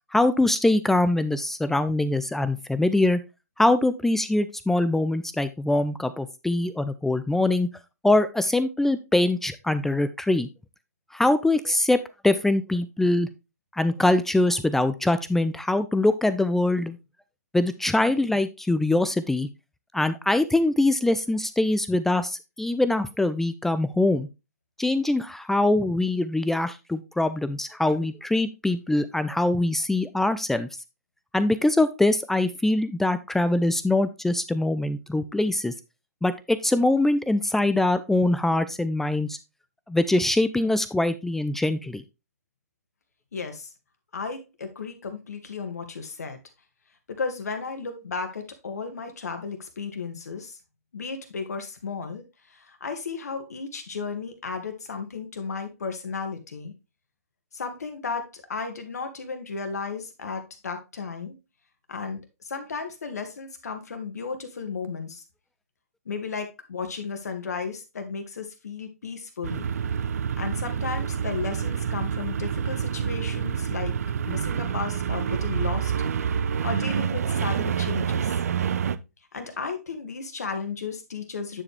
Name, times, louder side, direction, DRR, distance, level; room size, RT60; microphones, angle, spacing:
voice 1, 0.1-3.2 3.6-7.7 8.0-10.5 11.1-13.3 13.7-17.0 17.5-19.5 19.9-24.3 24.8-30.7 31.3-35.7 36.2-39.4 39.9-42.0, left 2 dB, 5° left, 13 dB, 0.4 m, -23 dB
voice 2, 43.3-43.7 44.1-46.4 47.1-50.6 50.9-56.7 57.5-61.3 61.9-65.2 66.1-69.7 70.4-74.0 74.3-75.9 76.6-78.4 79.3-81.6, left 5 dB, 75° left, 7 dB, 2.0 m, -34 dB
sound 1, 69.4-79.0, right 7 dB, 65° right, 0.6 m, -27 dB
9.7 x 4.9 x 3.3 m, 0.26 s
hypercardioid pair, 135°, 9 cm